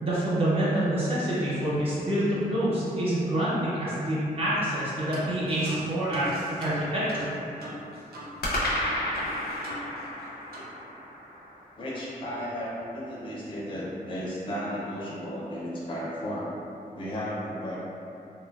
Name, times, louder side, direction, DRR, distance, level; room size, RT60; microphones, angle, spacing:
voice 1, 0.0-6.3 6.6-7.3, right 1 dB, 40° right, -9 dB, 0.5 m, -27 dB
sound 1, 0.7-2.6 8.4-12.7, left 1 dB, 90° left, 0.5 m, -34 dB
sound 2, 4.7-4.8 5.1-8.3 8.6-8.7 9.1-10.2 10.5-10.7, right 1 dB, 90° right, 0.5 m, -40 dB
voice 2, 11.8-16.5 16.9-17.8, equal, 35° left, -6 dB, 0.4 m, -34 dB
2.9 x 2.1 x 2.2 m, 2.7 s
wide cardioid pair, 165°, 16 cm